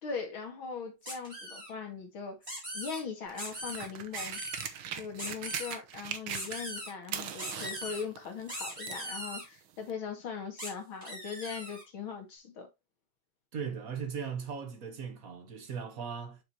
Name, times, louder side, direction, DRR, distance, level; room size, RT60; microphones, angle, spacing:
voice 1, 0.0-2.4 2.7-4.4 4.9-12.7, left 6 dB, 85° left, 2.8 m, -40 dB
sound 1, 1.1-1.7 2.4-3.0 3.4-3.9 4.1-4.7 5.2-5.8 6.3-6.9 7.4-8.0 8.5-9.5 10.6-10.7 11.0-11.8, equal, 15° right, 4.3 m, -40 dB
sound 2, 3.3-6.8 7.0-9.1 9.9-10.0, right 9 dB, 80° right, 1.7 m, -40 dB
voice 2, 13.5-16.4, right 6 dB, 45° right, 1.8 m, -38 dB
7.6 x 6.4 x 2.8 m
omnidirectional pair, 2.2 m